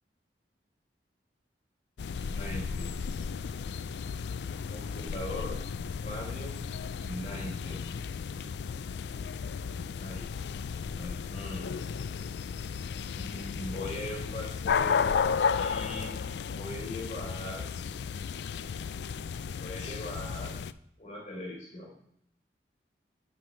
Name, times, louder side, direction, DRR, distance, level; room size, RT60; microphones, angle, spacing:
sound 1, 2.0-20.7, left 6 dB, 75° left, 0.3 m, -34 dB
voice 1, 2.1-3.0 4.7-5.7 6.0-6.6 7.0-7.9 9.8-10.6 10.9-11.7 13.1-15.2 15.5-16.2 16.5-17.7 19.6-20.6 21.0-21.9, left 1 dB, 40° left, -3 dB, 3.9 m, -40 dB
10.0 x 7.7 x 3.3 m, 0.72 s
head